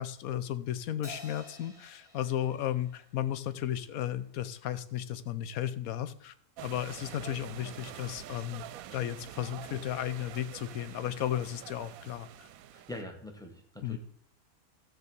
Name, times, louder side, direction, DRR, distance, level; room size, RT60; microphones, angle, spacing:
voice 1, 0.0-6.3 6.6-8.6 8.9-12.5 13.8-14.0, left 11 dB, 70° left, 13 dB, 1.2 m, -34 dB
Crash cymbal, 1.0-3.7, left 1 dB, 50° left, 3.9 m, -51 dB
sound 1, 6.6-13.0, right 12 dB, 75° right, 1.0 m, -46 dB
voice 2, 12.7-14.0, left 1 dB, ahead, 3 dB, 1.5 m, -43 dB
13.5 x 4.6 x 8.1 m, 0.69 s
omnidirectional pair, 1.6 m